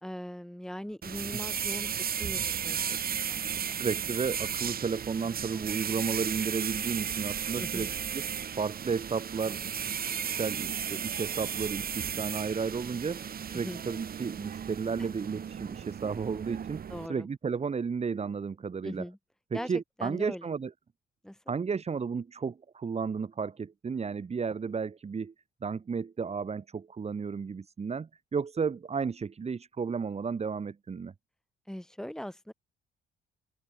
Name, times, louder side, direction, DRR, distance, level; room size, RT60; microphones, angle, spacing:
voice 1, 0.0-3.8 7.6-7.9 13.5-13.8 15.0-15.1 16.9-17.3 18.8-19.2 19.5-19.7 20.0-20.5 21.2-21.4 31.7-32.5, equal, 5° left, 3.1 m, -40 dB
sound 1, 1.0-17.1, right 8 dB, 50° right, 1.6 m, -35 dB
voice 2, 3.8-8.3 8.6-16.8 17.1-19.0 19.5-20.7 21.5-25.3 25.6-31.1, right 5 dB, 30° right, 1.3 m, -33 dB
open air
cardioid pair, 90°, 20 cm